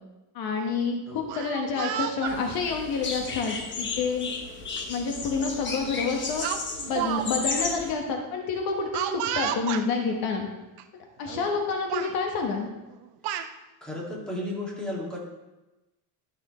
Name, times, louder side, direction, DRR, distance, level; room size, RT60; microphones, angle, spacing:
voice 1, 0.3-4.3 4.7-6.5 6.9-10.5 11.2-12.7, left 4 dB, 60° left, 2 dB, 1.5 m, -28 dB
Speech, 1.2-2.4 3.3-3.5 4.8-4.9 5.2-5.5 6.4-7.3 7.5-7.6 8.9-9.9 10.8-10.9 11.2-11.6 11.9-12.1 12.9-13.5, right 11 dB, 75° right, 0.8 m, -32 dB
sound 1, 2.3-7.9, left 4 dB, 30° left, 1.0 m, -34 dB
voice 2, 13.8-15.2, left 1 dB, ahead, -4 dB, 2.2 m, -33 dB
12.0 x 6.4 x 3.1 m, 1.0 s
cardioid pair, 145°, 40 cm